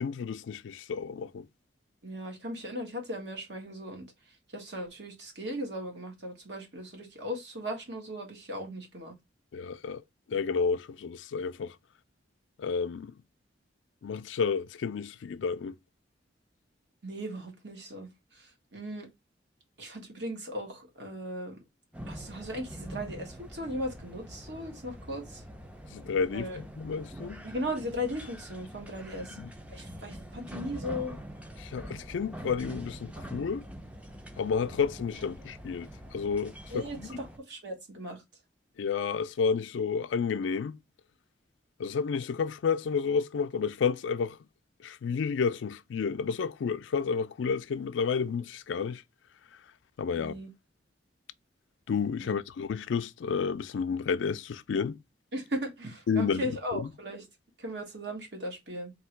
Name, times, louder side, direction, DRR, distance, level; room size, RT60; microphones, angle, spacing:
voice 1, 0.0-1.5 9.5-10.0 10.3-11.7 12.6-13.2 14.0-15.8 25.9-27.4 29.4-29.5 31.6-33.6 34.4-37.1 38.8-40.8 41.8-44.4 44.8-49.0 50.0-50.3 51.9-55.0 56.1-56.9, left 5 dB, 80° left, 0.4 m, -31 dB
voice 2, 2.0-4.1 4.5-9.1 17.0-18.1 18.3-19.1 19.8-21.6 22.1-25.4 26.3-26.6 27.4-29.4 29.7-31.2 36.7-38.2 50.1-50.5 52.2-52.4 55.3-57.2 57.6-58.9, equal, 65° right, 1.5 m, -37 dB
sound 1, 21.9-37.4, equal, 5° right, 0.4 m, -44 dB
3.6 x 2.8 x 4.4 m
head